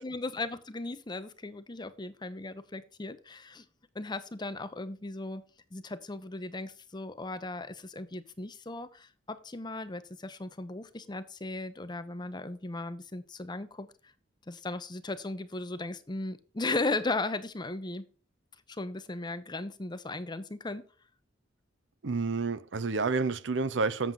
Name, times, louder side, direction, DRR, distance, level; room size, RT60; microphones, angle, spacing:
voice 1, 0.0-3.6 3.9-5.4 5.7-13.9 14.5-18.1 18.7-20.8, left 2 dB, 25° left, 0.7 m, -36 dB
voice 2, 22.0-24.1, right 4 dB, 65° right, 0.6 m, -29 dB
7.5 x 7.4 x 3.8 m
head